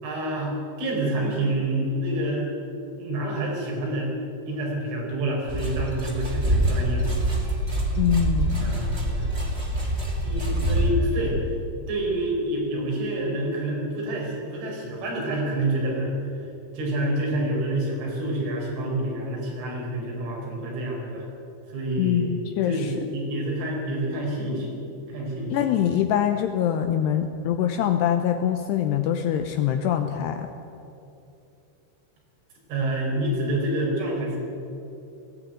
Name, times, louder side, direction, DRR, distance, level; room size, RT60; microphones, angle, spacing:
voice 1, 0.0-2.5 3.0-4.1 4.5-7.1 8.6-9.3 10.2-11.4 11.9-16.2 16.7-21.3 21.7-22.3 22.6-24.7 25.1-25.6 32.7-34.4, right 1 dB, 75° right, -2 dB, 7.4 m, -28 dB
sound 1, 5.5-10.9, right 1 dB, 50° right, 0.7 m, -25 dB
voice 2, 8.0-8.8 22.0-22.9 25.5-30.5, left 9 dB, 75° left, 6 dB, 2.5 m, -24 dB
18.5 x 16.0 x 9.1 m, 2.8 s
omnidirectional pair, 5.6 m